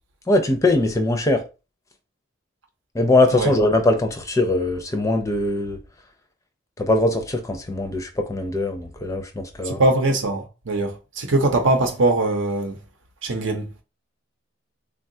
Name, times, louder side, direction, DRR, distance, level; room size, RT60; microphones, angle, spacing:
voice 1, 0.3-1.4 2.9-5.8 6.8-9.8, left 2 dB, 15° left, 0.5 m, -21 dB
voice 2, 9.6-12.8 13.2-13.7, right 2 dB, 75° right, 0.7 m, -21 dB
3.6 x 2.3 x 2.7 m
head